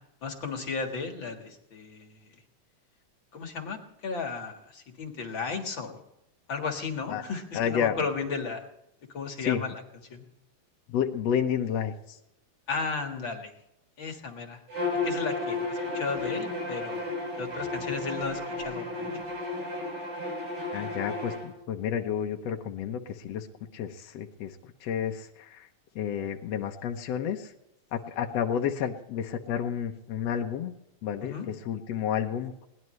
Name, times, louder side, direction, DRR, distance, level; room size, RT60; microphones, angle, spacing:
voice 1, 0.2-2.4 3.3-6.0 6.5-8.7 9.1-9.8 10.1-10.3 12.7-13.5 14.0-14.6 15.0-17.0 17.4-19.1 31.2-31.5, left 4 dB, 45° left, 4 dB, 2.3 m, -34 dB
voice 2, 7.5-8.0 9.4-9.6 10.9-12.2 20.7-23.5 23.7-25.7 26.0-27.5 27.9-30.7 31.0-32.5, left 8 dB, 65° left, 3 dB, 2.1 m, -31 dB
Bowed string instrument, 14.7-21.4, left 2 dB, 90° right, 6.6 m, -33 dB
22.0 x 18.5 x 3.2 m, 0.86 s
omnidirectional pair, 3.3 m